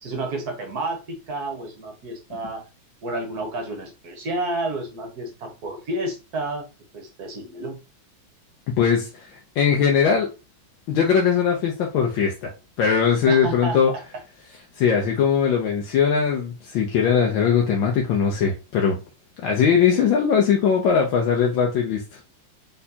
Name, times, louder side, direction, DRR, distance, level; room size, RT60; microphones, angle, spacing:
voice 1, 0.0-2.7 3.0-6.7 6.9-7.8 13.3-14.0, right 2 dB, 55° right, 1.4 m, -30 dB
voice 2, 8.8-10.3 10.9-12.5 12.8-13.9 14.8-19.0 19.4-22.2, left 7 dB, 75° left, 1.4 m, -20 dB
4.1 x 3.9 x 2.7 m
omnidirectional pair, 2.2 m